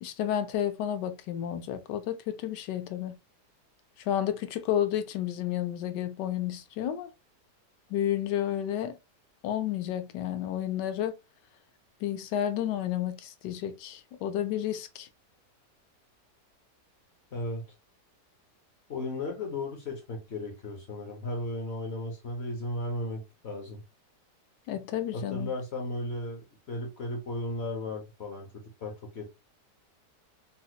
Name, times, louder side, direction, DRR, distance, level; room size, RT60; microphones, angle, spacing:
voice 1, 0.0-3.2 4.1-7.1 7.9-9.0 9.4-11.1 12.0-15.1 24.7-25.5, left 11 dB, 85° left, 1.2 m, -31 dB
voice 2, 17.3-17.7 18.9-23.8 25.1-29.3, left 1 dB, 60° left, 0.7 m, -35 dB
4.0 x 2.1 x 2.8 m
omnidirectional pair, 1.8 m